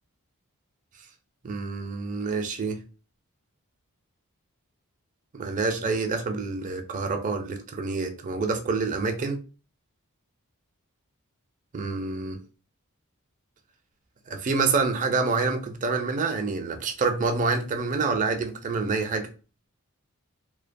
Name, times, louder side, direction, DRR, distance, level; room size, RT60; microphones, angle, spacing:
voice 1, 1.4-2.8 5.4-9.4 11.7-12.4 14.3-19.3, right 4 dB, 35° right, 0.4 m, -27 dB
2.5 x 2.2 x 2.5 m
head